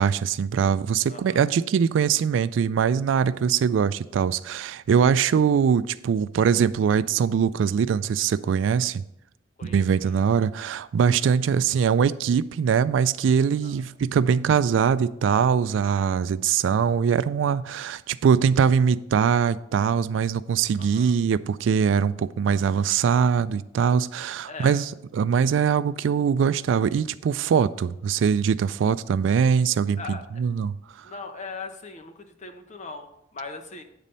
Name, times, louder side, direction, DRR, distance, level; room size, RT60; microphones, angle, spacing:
voice 1, 0.0-9.0 9.6-24.8 25.1-31.1, right 7 dB, 80° right, 0.3 m, -22 dB
voice 2, 1.1-1.5 9.6-10.2 13.6-13.9 20.8-21.1 24.4-24.8 30.0-30.4 31.0-33.8, left 4 dB, 40° left, 0.8 m, -40 dB
8.9 x 4.1 x 5.3 m
head